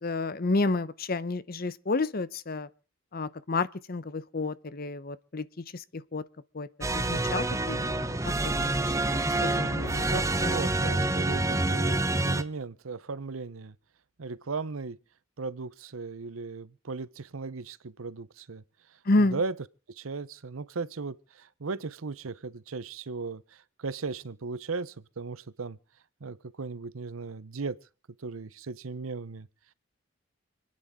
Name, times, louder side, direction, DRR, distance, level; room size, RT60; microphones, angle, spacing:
voice 1, 0.0-2.7 3.1-6.2 6.5-6.7 6.9-8.2 8.4-10.0 10.4-10.5 19.1-19.4, left 3 dB, 45° left, 0.7 m, -30 dB
sound 1, 6.8-12.4, right 2 dB, 15° right, 0.8 m, -27 dB
voice 2, 9.7-13.8 14.2-15.0 15.4-18.6 19.2-19.5 19.9-25.8 26.2-27.8 28.2-29.5, right 4 dB, 90° right, 0.8 m, -37 dB
28.5 x 9.7 x 3.7 m
head